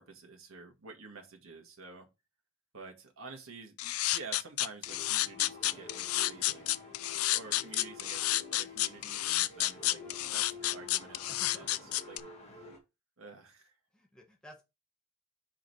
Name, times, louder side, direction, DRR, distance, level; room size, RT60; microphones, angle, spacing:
voice 1, 0.0-2.1 2.7-7.0 7.3-10.0 10.3-11.2 11.6-11.8 12.1-12.2 13.2-13.7, right 4 dB, 75° right, 1.6 m, -49 dB
sound 1, 3.8-12.2, left 15 dB, 90° left, 0.4 m, -30 dB
sound 2, 4.8-12.8, left 3 dB, 30° left, 2.0 m, -49 dB
voice 2, 9.8-10.4 11.3-12.0 13.9-14.6, left 1 dB, 5° left, 1.4 m, -56 dB
5.1 x 4.9 x 4.7 m
head